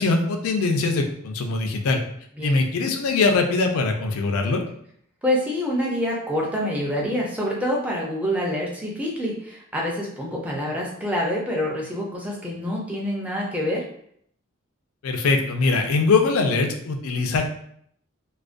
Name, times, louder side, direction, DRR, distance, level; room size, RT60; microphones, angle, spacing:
voice 1, 0.0-2.0 2.4-4.6 15.0-17.4, left 3 dB, 80° left, 4 dB, 0.4 m, -22 dB
voice 2, 5.2-13.8, equal, 5° right, -3 dB, 0.4 m, -26 dB
2.3 x 2.1 x 2.4 m, 0.68 s
head